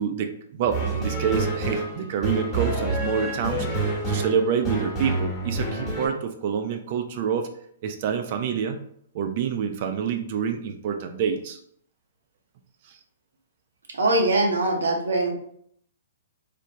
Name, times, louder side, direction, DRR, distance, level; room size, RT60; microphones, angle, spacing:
voice 1, 0.0-7.5 7.8-8.8 9.1-11.6, right 7 dB, 50° right, 6 dB, 0.3 m, -27 dB
sound 1, 0.7-6.1, right 2 dB, 20° left, 0.9 m, -27 dB
voice 2, 14.0-15.3, right 2 dB, 90° right, 1 dB, 0.7 m, -22 dB
3.2 x 2.0 x 2.7 m, 0.65 s
hypercardioid pair, 135°, 0 cm